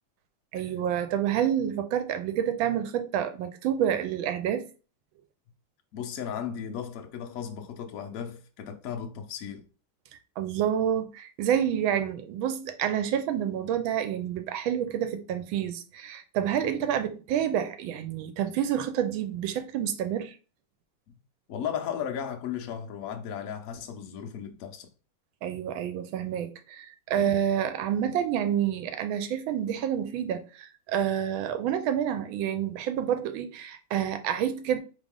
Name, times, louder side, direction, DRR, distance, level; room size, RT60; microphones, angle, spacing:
voice 1, 0.5-4.7 10.4-20.4 25.4-34.8, right 9 dB, 90° right, 1.4 m, -28 dB
voice 2, 5.9-9.6 21.5-24.9 27.1-27.4, left 8 dB, 60° left, 0.9 m, -35 dB
4.2 x 3.1 x 3.6 m
omnidirectional pair, 2.2 m